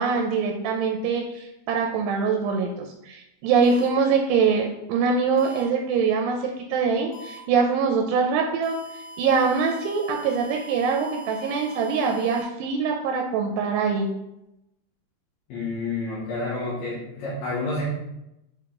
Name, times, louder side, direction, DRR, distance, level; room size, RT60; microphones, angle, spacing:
voice 1, 0.0-8.8 9.2-14.1, right 5 dB, 85° right, 2 dB, 2.7 m, -23 dB
sound 1, 3.6-3.9 5.4-5.6 7.1-7.4 8.6-12.4, equal, 85° left, 3.4 m, -42 dB
voice 2, 15.5-17.8, left 3 dB, 65° left, -9 dB, 2.8 m, -29 dB
7.4 x 3.8 x 3.7 m, 0.88 s
omnidirectional pair, 4.7 m